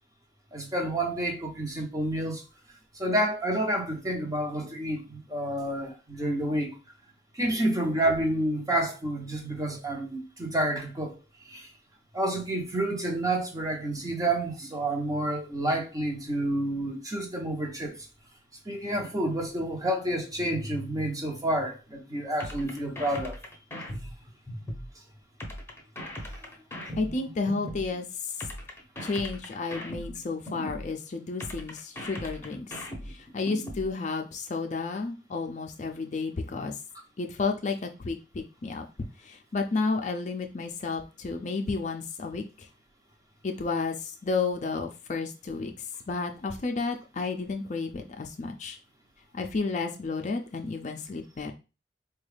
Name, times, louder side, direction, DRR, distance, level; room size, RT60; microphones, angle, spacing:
voice 1, 0.5-2.4 3.0-6.8 7.3-11.1 11.5-11.7 12.1-18.0 18.7-23.4 26.2-26.5, right 1 dB, 20° right, 0.8 m, -29 dB
sound 1, 22.4-24.9 25.4-27.9 28.4-30.9 31.4-33.9, equal, 15° left, 0.8 m, -38 dB
voice 2, 27.0-28.3 29.0-32.8 33.1-36.7 37.2-38.9 39.2-42.7 43.4-45.7 46.1-48.8 49.3-51.5, left 4 dB, 45° left, 0.5 m, -32 dB
4.1 x 2.3 x 3.3 m
head